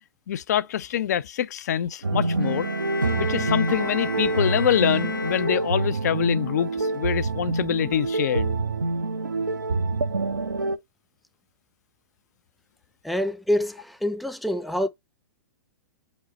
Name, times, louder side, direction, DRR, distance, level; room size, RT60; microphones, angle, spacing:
voice 1, 0.3-2.7 3.2-8.5, left 10 dB, 60° left, 0.5 m, -25 dB
sound 1, 2.0-10.8, right 3 dB, 85° right, 0.6 m, -26 dB
sound 2, 2.4-6.2, left 4 dB, 85° left, 0.9 m, -34 dB
voice 2, 13.0-14.9, left 1 dB, ahead, 0.5 m, -26 dB
5.1 x 2.0 x 4.1 m
figure-of-eight pair, 110°, 10 cm